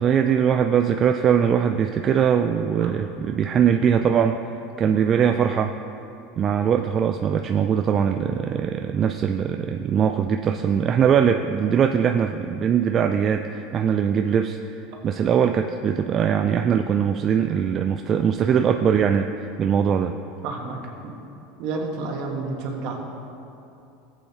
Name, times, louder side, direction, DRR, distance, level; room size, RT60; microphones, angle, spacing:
voice 1, 0.0-4.4 4.8-5.7 6.4-14.7 15.0-19.3 19.6-20.1, right 8 dB, 40° right, 6 dB, 0.4 m, -21 dB
voice 2, 20.4-21.2 21.6-23.0, right 3 dB, 65° right, 1 dB, 1.6 m, -30 dB
14.5 x 7.8 x 3.0 m, 2.7 s
supercardioid pair, 100°, 0 cm